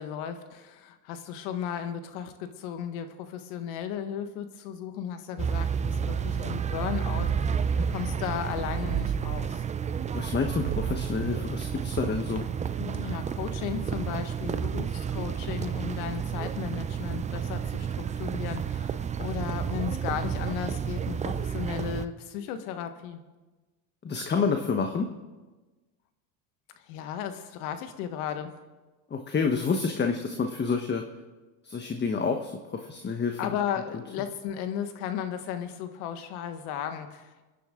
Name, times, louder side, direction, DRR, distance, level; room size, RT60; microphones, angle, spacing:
voice 1, 0.0-9.6 12.7-23.2 26.8-28.5 33.4-37.5, left 9 dB, 75° left, 8 dB, 1.6 m, -35 dB
sound 1, 5.4-22.1, right 7 dB, 15° right, 0.4 m, -31 dB
sound 2, 7.1-7.9 8.9-9.7 10.6-11.4, right 12 dB, 65° right, 1.0 m, -34 dB
voice 2, 10.1-12.5 24.0-25.1 29.1-31.0 31.6-33.4, left 5 dB, 25° left, 5 dB, 1.2 m, -28 dB
27.0 x 10.5 x 3.8 m, 1.2 s
supercardioid pair, 100°, 46 cm